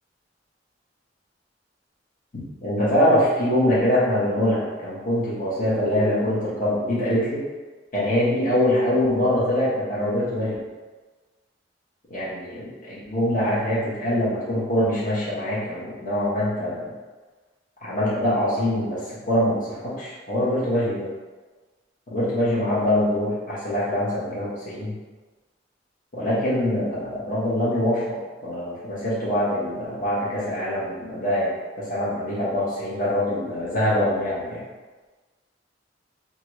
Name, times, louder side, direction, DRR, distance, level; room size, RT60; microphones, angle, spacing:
voice 1, 2.3-7.4 7.9-10.5 12.1-16.8 17.8-21.1 22.1-24.9 26.1-34.6, left 1 dB, 45° left, -8 dB, 1.0 m, -24 dB
3.0 x 2.4 x 3.0 m, 1.3 s
head